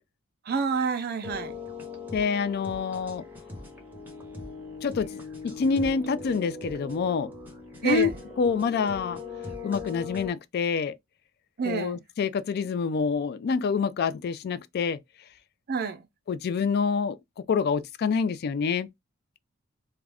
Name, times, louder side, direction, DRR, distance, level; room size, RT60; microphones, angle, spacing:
voice 1, 0.5-1.5 7.8-8.2 11.6-12.0 15.7-16.0, right 5 dB, 50° right, 0.4 m, -28 dB
sound 1, 1.2-10.3, left 4 dB, 10° right, 0.8 m, -40 dB
voice 2, 2.1-3.2 4.8-5.1 5.4-7.3 7.8-8.1 8.4-9.2 9.6-10.9 11.7-15.0 16.3-17.2 17.5-18.9, left 5 dB, 50° left, 0.3 m, -26 dB
2.4 x 2.2 x 3.3 m
head